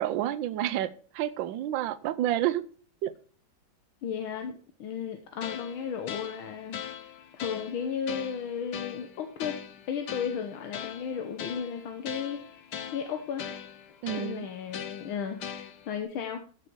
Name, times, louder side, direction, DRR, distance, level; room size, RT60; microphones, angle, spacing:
voice 1, 0.0-2.6 3.0-3.1 14.0-14.5, right 12 dB, 70° right, 1.4 m, -29 dB
voice 2, 4.0-6.8 7.3-9.6 9.9-13.5 14.2-16.5, left 7 dB, 80° left, 1.9 m, -34 dB
sound 1, 5.4-16.0, left 9 dB, 60° left, 1.4 m, -41 dB
13.5 x 6.5 x 4.6 m
omnidirectional pair, 2.2 m